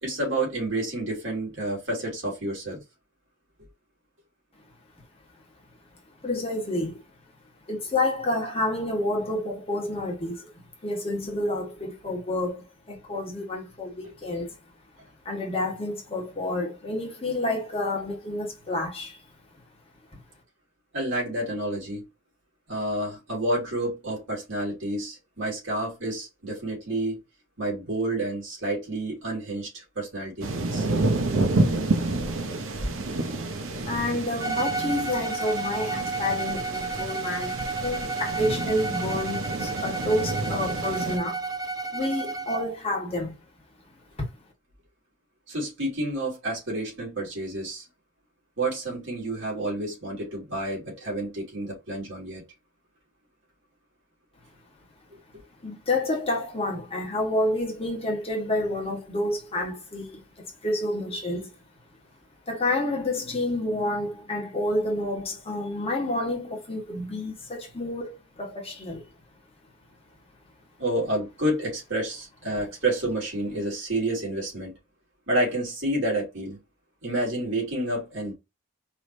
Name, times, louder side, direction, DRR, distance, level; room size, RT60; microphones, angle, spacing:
voice 1, 0.0-2.8 14.0-14.1 20.9-22.0 22.7-27.2 27.6-30.9 45.5-47.8 48.6-52.4 70.8-74.7 75.3-76.6 77.0-78.3, right 1 dB, 70° right, 2.9 m, -29 dB
voice 2, 6.2-7.0 7.7-14.6 15.2-19.2 31.7-32.1 33.8-41.5 41.9-43.4 44.2-44.3 55.6-61.5 62.5-69.1, left 1 dB, 30° left, 1.4 m, -29 dB
sound 1, 30.4-41.2, right 2 dB, 90° right, 0.8 m, -29 dB
Bowed string instrument, 34.4-42.7, right 4 dB, 20° right, 0.5 m, -32 dB
4.8 x 3.2 x 2.7 m
head